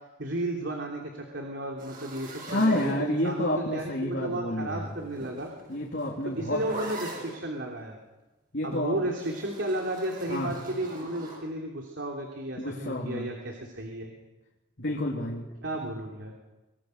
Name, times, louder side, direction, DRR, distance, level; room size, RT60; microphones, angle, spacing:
voice 1, 0.2-5.5 6.4-8.0 8.6-14.1 15.6-16.3, right 1 dB, 65° right, 1 dB, 3.2 m, -33 dB
sound 1, 1.8-3.5 4.7-7.4 9.2-11.4, right 1 dB, 45° right, 7.9 m, -42 dB
voice 2, 2.5-4.9 5.7-6.6 8.5-9.0 10.3-10.5 12.6-13.3 14.8-15.5 15.8-15.9, left 1 dB, 60° left, -2 dB, 3.0 m, -29 dB
25.0 x 23.0 x 6.7 m, 1.1 s
head